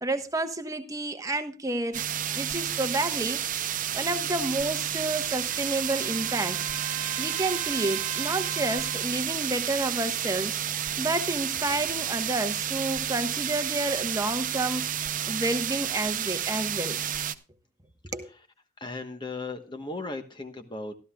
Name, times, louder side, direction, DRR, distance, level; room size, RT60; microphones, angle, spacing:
voice 1, 0.0-3.4 3.9-6.6 7.2-10.6 11.0-14.9 15.3-17.0 18.1-18.3, right 2 dB, 15° right, 1.1 m, -30 dB
sound 1, 1.9-17.3, right 10 dB, 40° right, 0.7 m, -31 dB
Trumpet, 4.7-9.1, right 10 dB, 80° right, 1.2 m, -40 dB
voice 2, 18.1-18.4 18.8-20.9, left 3 dB, 20° left, 1.1 m, -37 dB
15.0 x 13.0 x 2.4 m
head